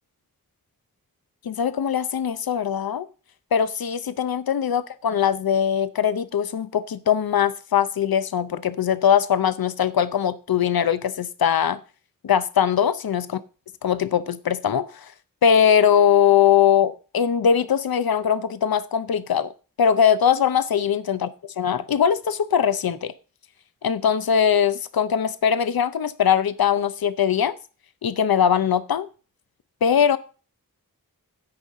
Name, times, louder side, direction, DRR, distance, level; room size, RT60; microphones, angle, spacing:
voice 1, 1.4-3.1 3.5-11.8 12.2-13.4 13.8-15.1 15.4-19.5 19.8-23.1 23.8-27.5 28.0-29.1 29.8-30.2, left 8 dB, 85° left, 0.6 m, -21 dB
15.5 x 5.6 x 3.6 m
wide cardioid pair, 65°, 35 cm